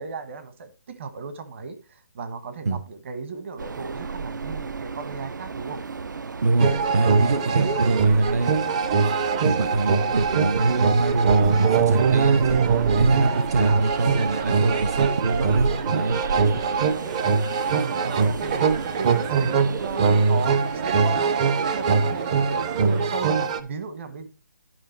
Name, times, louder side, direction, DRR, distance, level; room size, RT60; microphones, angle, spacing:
voice 1, 0.0-5.8 17.7-21.3 21.7-24.3, right 4 dB, 40° right, 1.3 m, -35 dB
Train, 3.6-23.1, right 5 dB, 80° right, 0.7 m, -33 dB
voice 2, 6.4-8.6 9.4-16.2, right 3 dB, 55° right, 1.0 m, -24 dB
sound 1, 6.6-23.6, right 5 dB, 20° right, 0.5 m, -22 dB
11.0 x 5.2 x 4.4 m
hypercardioid pair, 165°, 10 cm